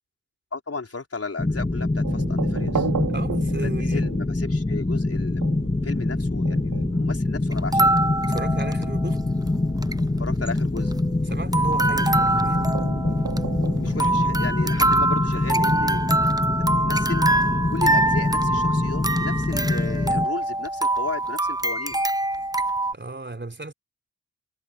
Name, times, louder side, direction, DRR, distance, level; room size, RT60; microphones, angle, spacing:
voice 1, 0.5-2.9 3.6-5.6 5.8-7.9 10.2-10.9 13.4-16.2 16.6-17.3 17.7-22.0, left 4 dB, 45° left, 4.9 m, -35 dB
sound 1, 1.4-20.3, left 2 dB, 20° left, 2.6 m, -25 dB
sound 2, 2.0-15.0, right 7 dB, 85° right, 4.5 m, -36 dB
voice 2, 3.1-4.0 8.2-9.2 11.3-12.7 22.9-23.7, right 2 dB, 35° right, 4.0 m, -34 dB
sound 3, 7.5-9.2 9.5-9.6 9.7-10.0 10.5-11.2 11.5-22.9, right 2 dB, 10° right, 0.9 m, -24 dB
cardioid pair, 45°, 32 cm